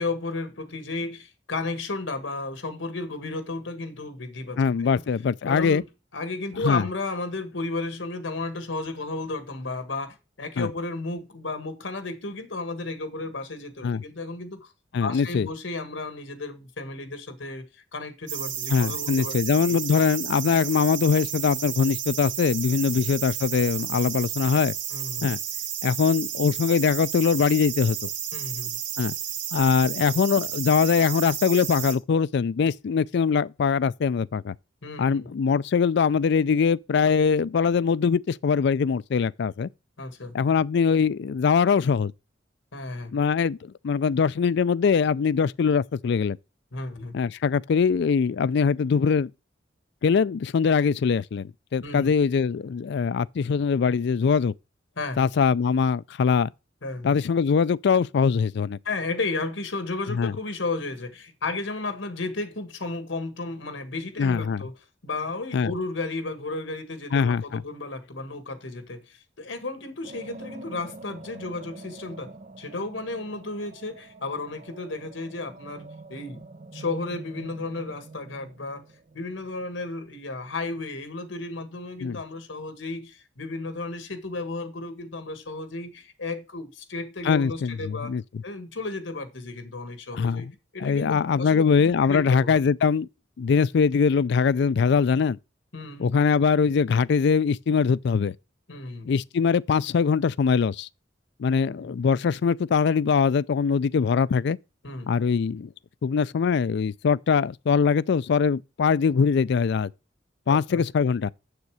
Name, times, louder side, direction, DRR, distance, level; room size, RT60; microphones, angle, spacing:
voice 1, 0.0-5.0 5.4-5.8 6.1-14.7 15.0-17.6 17.9-19.3 19.7-19.8 22.8-22.9 24.9-25.3 28.3-28.8 34.8-35.3 40.0-40.4 42.7-43.2 46.7-47.2 51.8-52.1 55.0-55.2 56.8-57.2 58.8-64.7 65.0-76.4 76.7-78.8 79.1-88.1 88.4-90.5 90.7-92.6 93.6-93.7 95.7-96.1 98.7-99.1 101.6-101.9 104.8-105.1 110.4-110.8, left 3 dB, 85° left, 1.6 m, -33 dB
voice 2, 4.6-5.8 6.6-6.8 10.6-10.7 13.8-14.0 14.9-15.5 18.7-24.7 25.2-25.4 25.8-28.1 29.0-29.1 29.5-34.5 35.0-39.7 40.3-42.1 43.1-46.4 47.1-49.3 50.0-54.5 55.2-56.5 57.0-58.8 60.1-60.3 64.2-64.6 65.5-65.7 67.1-67.6 82.0-82.2 87.2-88.2 90.1-90.5 90.8-93.1 93.4-95.4 96.0-98.3 99.1-100.9 101.4-104.6 105.1-105.7 106.0-109.9 110.5-111.3, left 6 dB, 65° left, 0.4 m, -22 dB
sound 1, 18.3-31.9, right 10 dB, 70° right, 1.9 m, -32 dB
sound 2, 70.0-80.2, right 2 dB, 40° right, 0.7 m, -45 dB
7.2 x 6.7 x 4.8 m
head